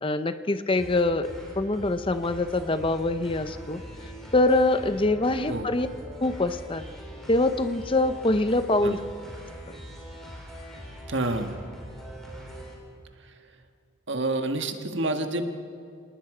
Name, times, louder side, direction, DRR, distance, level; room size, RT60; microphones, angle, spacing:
voice 1, 0.0-1.3 1.6-3.8 4.3-5.9 6.2-6.8 7.3-9.0, left 2 dB, 25° left, 10 dB, 0.7 m, -24 dB
sound 1, 0.7-12.7, equal, ahead, 4.3 m, -42 dB
voice 2, 11.1-11.6 14.1-15.5, right 2 dB, 60° right, 6 dB, 1.6 m, -28 dB
27.0 x 19.5 x 5.0 m, 2.4 s
head